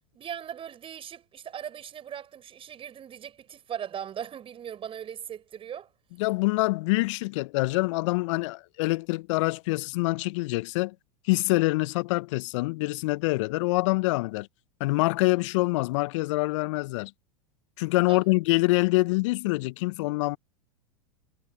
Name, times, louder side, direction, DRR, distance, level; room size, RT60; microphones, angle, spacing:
voice 1, 0.1-5.9 18.1-18.2, right 9 dB, 30° right, 8.0 m, -39 dB
voice 2, 6.2-10.9 11.3-14.5 14.8-17.1 17.8-20.4, left 23 dB, 55° left, 1.1 m, -25 dB
hypercardioid pair, 95°, 18 cm